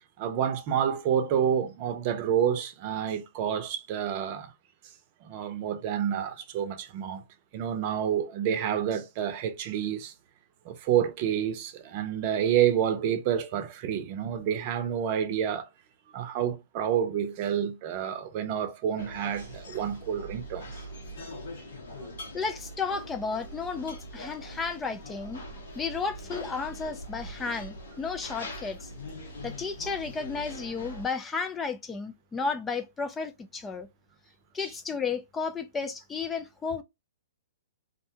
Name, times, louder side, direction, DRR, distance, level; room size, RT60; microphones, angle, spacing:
voice 1, 0.2-4.5 5.2-7.2 7.5-10.1 10.6-15.7 16.1-20.7 34.6-34.7, right 9 dB, 45° right, 0.6 m, -28 dB
sound 1, 19.0-31.1, equal, 70° left, 1.2 m, -42 dB
voice 2, 22.3-25.4 25.8-28.9 29.4-33.9 34.5-36.8, left 5 dB, 15° left, 0.3 m, -33 dB
2.5 x 2.2 x 2.7 m
hypercardioid pair, 120°, 0 cm